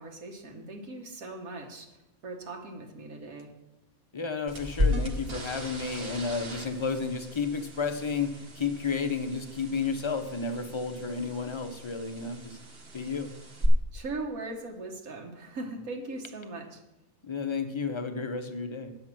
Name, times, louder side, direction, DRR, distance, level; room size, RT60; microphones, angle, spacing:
voice 1, 0.0-1.9 2.2-3.5 13.9-16.8, right 2 dB, 75° right, 2 dB, 1.7 m, -39 dB
voice 2, 4.1-12.6 12.9-13.3 17.2-18.9, left 5 dB, 30° left, 8 dB, 0.5 m, -32 dB
sound 1, 4.5-13.7, left 1 dB, 45° right, 1.5 m, -36 dB
9.1 x 7.8 x 6.0 m, 0.93 s
omnidirectional pair, 1.5 m